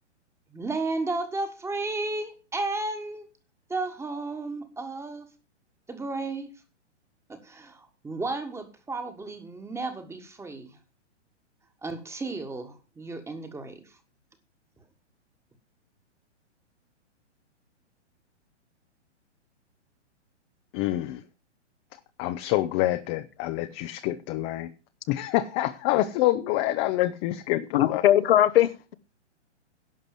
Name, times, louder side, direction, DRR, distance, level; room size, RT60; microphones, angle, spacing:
voice 1, 0.5-3.3 3.7-5.3 5.9-6.6 7.3-10.8 11.8-14.0, right 3 dB, 5° right, 1.6 m, -33 dB
voice 2, 20.7-21.2 22.2-24.7 25.1-28.0, left 15 dB, 25° left, 0.7 m, -26 dB
voice 3, 27.7-28.9, left 12 dB, 55° left, 1.0 m, -20 dB
11.0 x 6.6 x 7.6 m
hypercardioid pair, 135°, 36 cm